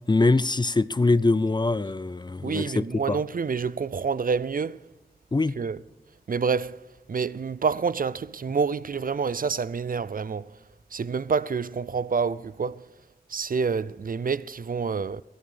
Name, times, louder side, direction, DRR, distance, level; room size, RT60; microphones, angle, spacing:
voice 1, 0.1-3.2 5.3-5.5, left 3 dB, 30° left, 0.4 m, -23 dB
voice 2, 2.4-4.8 5.6-5.8 6.3-6.8 7.1-10.5 10.9-12.9 13.3-15.2, right 5 dB, 60° right, 0.4 m, -27 dB
16.5 x 11.5 x 5.1 m
wide cardioid pair, 65°, 16 cm